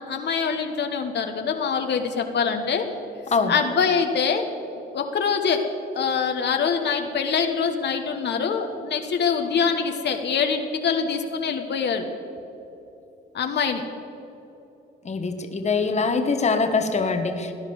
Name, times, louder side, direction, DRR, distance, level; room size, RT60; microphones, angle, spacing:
voice 1, 0.1-2.8 3.5-4.4 4.9-5.6 5.9-12.0 13.3-13.8, left 6 dB, 60° left, 5 dB, 1.4 m, -24 dB
voice 2, 15.0-17.5, left 4 dB, 35° left, 6 dB, 1.4 m, -23 dB
18.0 x 10.0 x 7.1 m, 2.9 s
cardioid pair, 90°, 20 cm